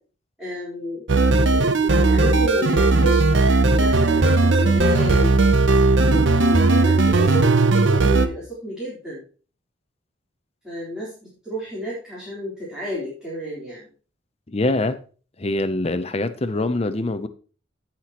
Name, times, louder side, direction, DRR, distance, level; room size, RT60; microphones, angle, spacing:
voice 1, 0.4-5.5 6.1-9.2 10.6-13.9, equal, 5° right, 3.8 m, -31 dB
sound 1, 1.1-8.3, right 3 dB, 65° right, 0.8 m, -17 dB
voice 2, 14.5-15.0 15.4-17.3, left 2 dB, 30° left, 0.7 m, -24 dB
16.5 x 5.9 x 3.0 m
head